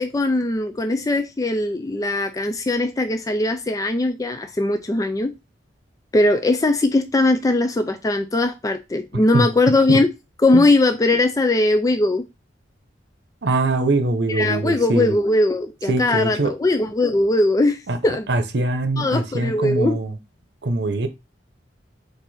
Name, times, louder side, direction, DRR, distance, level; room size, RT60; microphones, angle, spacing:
voice 1, 0.0-5.3 6.1-10.1 10.4-12.3 14.3-18.3 19.0-20.0, left 2 dB, 20° left, 0.3 m, -20 dB
voice 2, 13.4-15.2 15.9-16.5 17.9-18.0 18.3-20.2 20.6-21.1, right 2 dB, 70° right, 0.8 m, -22 dB
4.6 x 2.6 x 4.2 m
head